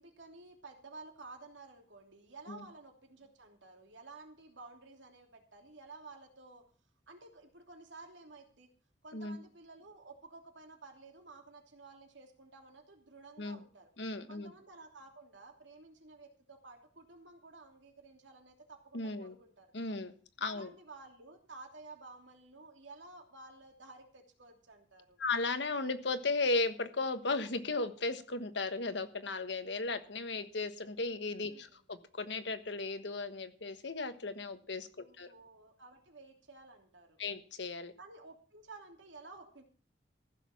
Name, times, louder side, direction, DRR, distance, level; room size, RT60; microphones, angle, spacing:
voice 1, 0.0-6.6 7.1-8.7 9.0-13.9 14.3-19.9 20.4-25.2 31.4-31.8 35.0-37.2 38.0-39.6, right 3 dB, 80° right, 3 dB, 3.0 m, -53 dB
voice 2, 14.0-14.5 18.9-19.3 19.7-20.1 20.4-20.7 25.2-35.3 37.2-37.9, left 3 dB, 70° left, 9 dB, 1.3 m, -36 dB
15.0 x 6.7 x 7.2 m, 0.44 s
head